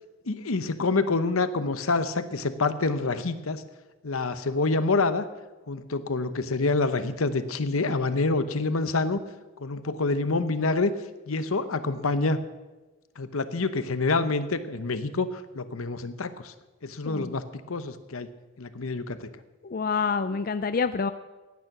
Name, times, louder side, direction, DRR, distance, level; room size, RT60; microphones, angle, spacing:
voice 1, 0.3-3.6 4.0-5.3 5.7-9.2 9.6-10.9 11.3-12.4 13.2-16.5 16.8-18.3 18.6-19.3, left 3 dB, 80° left, 12 dB, 0.9 m, -27 dB
voice 2, 17.0-17.4 19.6-21.1, left 5 dB, 45° left, 11 dB, 0.4 m, -27 dB
16.5 x 9.5 x 6.0 m, 1.2 s
head